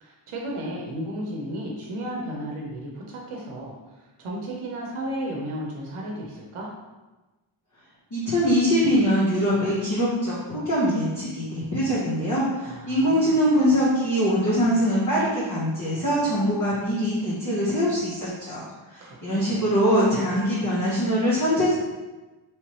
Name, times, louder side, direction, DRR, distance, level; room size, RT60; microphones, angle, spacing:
voice 1, 0.0-6.7 12.6-13.3 19.0-19.7, right 1 dB, 90° right, -2 dB, 0.7 m, -34 dB
voice 2, 8.1-18.6 18.9-21.7, equal, 40° left, -9 dB, 0.9 m, -23 dB
3.3 x 3.0 x 2.9 m, 1.2 s
wide cardioid pair, 110°, 48 cm